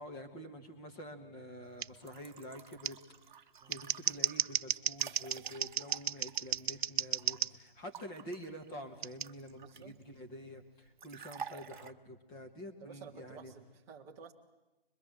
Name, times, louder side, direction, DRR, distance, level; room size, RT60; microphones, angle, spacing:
voice 1, 0.0-3.0 3.7-13.5, equal, 15° left, 4 dB, 1.5 m, -48 dB
Scissors, 1.8-1.9 2.8-2.9 3.6-7.5 9.0-9.3, right 8 dB, 85° right, 0.8 m, -33 dB
sound 1, 1.9-7.4 7.9-10.0 11.0-11.9, right 6 dB, 50° right, 1.0 m, -51 dB
voice 2, 9.6-10.0 12.8-14.3, right 6 dB, 10° right, -1 dB, 0.8 m, -52 dB
26.0 x 22.0 x 7.6 m, 1.0 s
hypercardioid pair, 175°, 31 cm